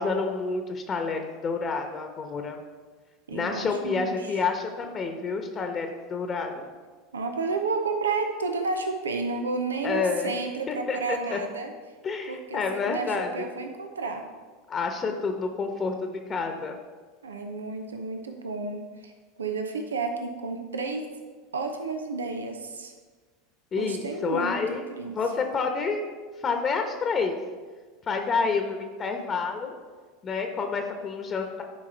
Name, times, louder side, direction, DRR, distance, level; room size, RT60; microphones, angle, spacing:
voice 1, 0.0-2.6 3.3-6.7 9.8-10.3 10.7-11.4 12.0-13.5 14.7-16.8 23.7-26.0 26.4-27.4 28.1-29.7 30.2-31.6, left 4 dB, 30° left, 5 dB, 1.1 m, -29 dB
voice 2, 3.3-4.4 7.1-11.7 12.3-14.3 17.2-19.1 19.4-21.1 21.5-22.9 23.8-25.2, right 4 dB, 85° right, 5 dB, 0.7 m, -31 dB
11.0 x 4.6 x 4.5 m, 1.4 s
hypercardioid pair, 85°, 0 cm